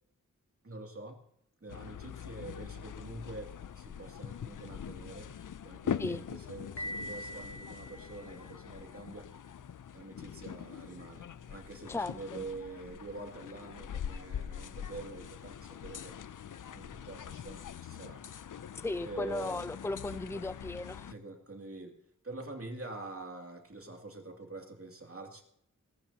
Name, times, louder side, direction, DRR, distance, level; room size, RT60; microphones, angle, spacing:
voice 1, 0.6-1.2 1.6-5.3 5.6-9.3 9.9-16.2 16.7-18.2 19.0-19.7 21.1-22.0 22.2-25.4, right 2 dB, 45° right, 2 dB, 2.6 m, -46 dB
sound 1, 1.7-21.1, left 8 dB, 80° left, 0.5 m, -43 dB
Piano, 6.8-8.7, equal, 50° left, 1.6 m, -43 dB
voice 2, 11.9-12.4 18.8-21.1, left 2 dB, 10° left, 13 dB, 0.5 m, -36 dB
19.0 x 18.5 x 2.9 m, 0.74 s
wide cardioid pair, 80°, 31 cm